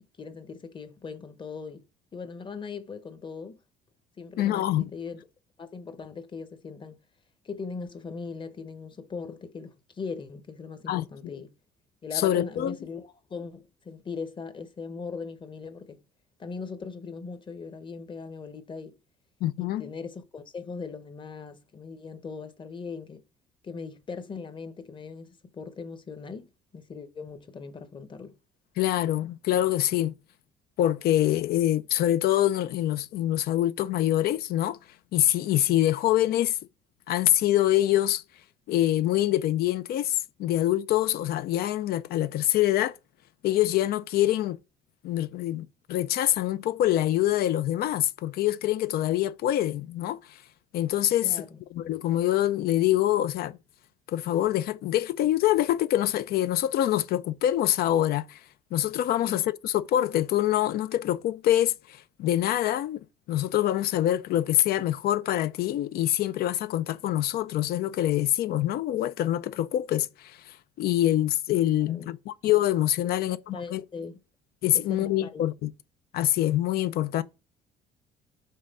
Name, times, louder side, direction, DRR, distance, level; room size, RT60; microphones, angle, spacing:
voice 1, 0.2-1.9 2.1-3.6 4.2-5.3 5.6-7.0 7.4-11.6 12.0-16.0 16.4-19.0 19.6-23.2 23.6-28.3 51.2-51.6 59.2-59.4 71.9-72.1 73.0-74.2 74.7-75.5, left 5 dB, 30° left, 0.9 m, -39 dB
voice 2, 4.4-4.9 10.9-11.1 11.3-11.4 12.1-12.8 19.4-19.9 28.8-30.1 30.8-34.8 35.1-36.6 37.1-38.2 38.7-43.0 43.4-44.6 45.0-50.2 50.7-51.4 51.7-53.6 54.1-58.4 58.7-63.0 63.3-73.8 74.6-75.7 76.1-77.2, left 13 dB, 65° left, 0.5 m, -25 dB
5.6 x 3.8 x 5.3 m
cardioid pair, 110°, 17 cm